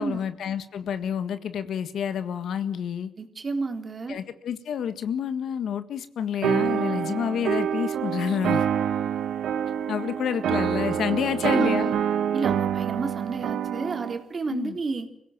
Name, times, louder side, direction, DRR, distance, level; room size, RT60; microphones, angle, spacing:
voice 1, 0.0-3.1 4.1-8.7 9.9-11.9 14.5-14.8, left 8 dB, 75° left, 11 dB, 1.7 m, -29 dB
voice 2, 3.2-4.2 11.1-11.2 11.5-12.0 12.3-15.1, right 4 dB, 40° right, 5 dB, 3.5 m, -31 dB
sound 1, 6.4-14.2, right 9 dB, 80° right, 1.6 m, -26 dB
25.0 x 16.5 x 9.1 m, 0.77 s
cardioid pair, 80°, 0 cm